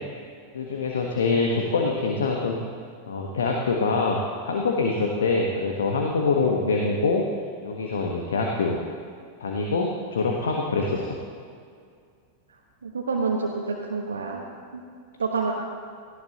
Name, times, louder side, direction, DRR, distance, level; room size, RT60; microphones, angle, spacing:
voice 1, 0.5-2.6 3.1-4.2 4.4-7.3 7.6-8.8 9.4-11.1, left 4 dB, 65° left, 0 dB, 1.3 m, -24 dB
voice 2, 12.8-14.4 14.7-14.8 15.2-15.5, right 4 dB, 70° right, -1 dB, 1.2 m, -27 dB
18.0 x 15.0 x 3.0 m, 2.2 s
figure-of-eight pair, 90°, 0 cm